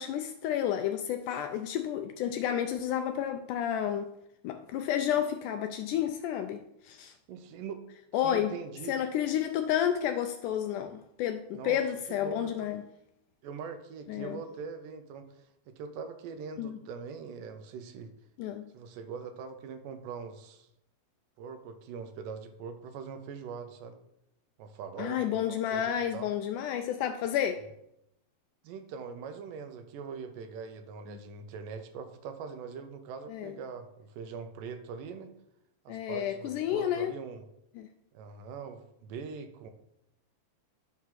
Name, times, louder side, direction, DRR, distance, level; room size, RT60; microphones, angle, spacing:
voice 1, 0.0-4.1 4.4-7.1 8.1-8.6 8.9-12.8 14.1-14.4 16.6-16.8 18.4-18.6 25.0-27.6 33.3-33.5 35.9-37.2 37.8-37.9, left 10 dB, 80° left, 1.8 m, -31 dB
voice 2, 7.3-7.9 8.2-8.9 11.5-11.8 12.2-12.7 13.4-15.3 15.7-18.1 18.7-20.7 21.4-24.0 24.6-26.3 28.6-35.3 35.9-37.4 38.1-39.7, right 6 dB, 80° right, 2.3 m, -42 dB
10.5 x 3.6 x 5.7 m
omnidirectional pair, 3.9 m